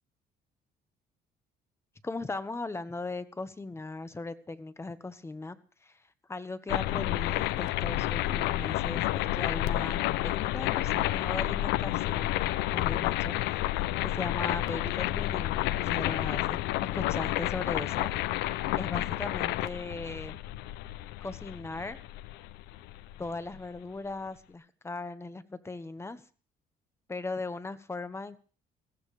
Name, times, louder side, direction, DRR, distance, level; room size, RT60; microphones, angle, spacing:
voice 1, 2.0-5.6 5.8-12.4 12.7-16.6 16.9-18.1 18.8-20.4 21.2-22.0 23.2-26.2 27.1-28.4, left 3 dB, 15° left, 12 dB, 1.3 m, -38 dB
sound 1, 6.7-23.6, left 15 dB, 90° left, 0.6 m, -30 dB
20.5 x 15.5 x 3.3 m, 0.39 s
cardioid pair, 110°, 17 cm